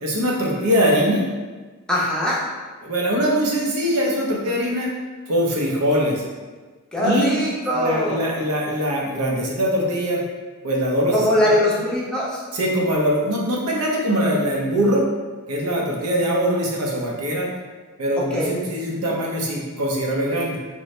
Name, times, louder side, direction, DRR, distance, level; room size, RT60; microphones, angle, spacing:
voice 1, 0.0-1.2 2.8-4.9 5.3-6.2 7.0-7.4 7.7-10.2 10.6-11.2 12.5-15.0 15.5-17.5 18.0-20.6, equal, 70° right, -2 dB, 0.7 m, -22 dB
voice 2, 1.9-2.4 6.9-8.2 11.1-12.4 18.3-18.5, left 1 dB, 5° left, -7 dB, 0.7 m, -21 dB
3.1 x 2.6 x 3.2 m, 1.4 s
head